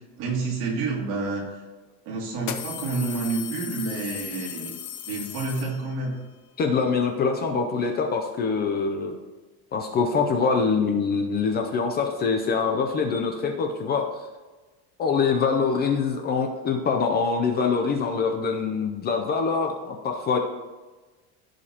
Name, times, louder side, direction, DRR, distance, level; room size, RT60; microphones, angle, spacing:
voice 1, 0.2-1.5 2.1-4.7 5.1-6.1, right 3 dB, 60° right, -2 dB, 2.5 m, -29 dB
sound 1, 1.3-1.4 2.4-6.2, left 9 dB, 50° left, 0.8 m, -36 dB
voice 2, 6.6-9.1 9.7-14.1 15.0-20.4, left 5 dB, 25° left, 4 dB, 0.5 m, -24 dB
15.0 x 5.1 x 2.9 m, 1.3 s
cardioid pair, 175°, 39 cm